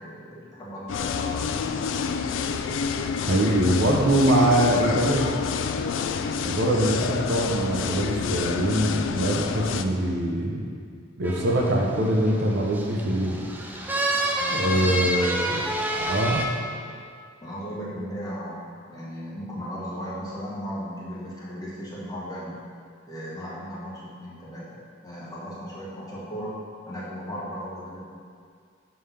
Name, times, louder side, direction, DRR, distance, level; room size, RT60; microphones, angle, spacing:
voice 1, 0.0-1.5 14.3-15.1 17.4-22.6 23.1-26.6 26.9-28.0, equal, 20° left, -7 dB, 1.2 m, -36 dB
sound 1, 0.9-9.8, left 6 dB, 65° left, 0.3 m, -28 dB
voice 2, 3.2-5.3 6.4-10.6 11.2-13.4 14.5-15.7 16.1-16.5, right 1 dB, 60° right, -1 dB, 0.6 m, -23 dB
sound 2, 11.2-16.5, right 1 dB, 10° right, 0.4 m, -29 dB
5.5 x 3.3 x 5.6 m, 2.2 s
head